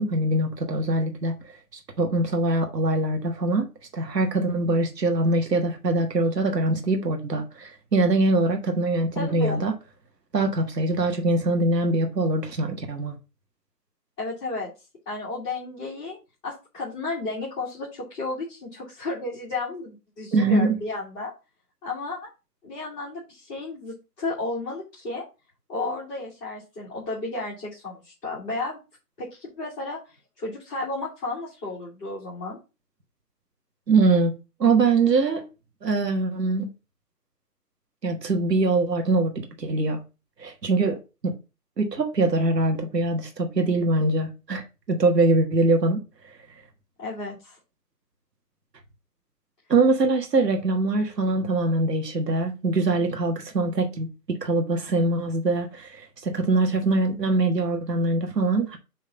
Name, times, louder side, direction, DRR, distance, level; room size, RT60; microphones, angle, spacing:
voice 1, 0.0-1.3 2.0-3.7 3.9-9.7 10.3-13.1 20.3-20.8 33.9-34.3 34.6-35.5 35.8-36.7 38.0-40.0 40.4-41.0 41.2-41.3 41.8-46.0 49.7-54.1 54.4-58.8, right 2 dB, 85° right, 1.6 m, -23 dB
voice 2, 9.1-9.6 14.2-14.7 15.0-16.2 16.4-21.3 21.8-22.3 22.6-25.2 25.7-28.8 29.2-30.0 30.4-32.6 47.0-47.6, left 2 dB, 10° left, 1.4 m, -33 dB
5.8 x 3.1 x 5.7 m
hypercardioid pair, 165°, 48 cm